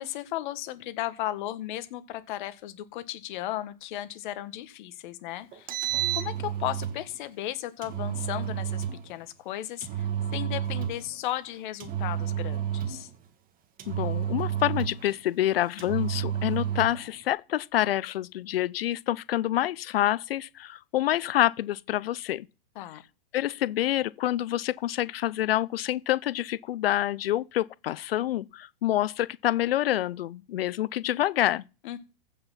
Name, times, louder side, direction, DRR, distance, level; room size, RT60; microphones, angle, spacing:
voice 1, 0.0-5.7 6.1-13.1 22.7-23.0 31.8-32.0, left 14 dB, 55° left, 1.6 m, -35 dB
Engine, 5.5-7.0 7.8-9.0 9.8-11.1 11.8-13.1 13.8-15.1 15.8-17.0, right 10 dB, 30° right, 1.7 m, -30 dB
voice 2, 13.9-22.5 23.3-31.6, left 13 dB, 80° left, 0.5 m, -27 dB
15.0 x 5.8 x 5.8 m
hypercardioid pair, 125°, 29 cm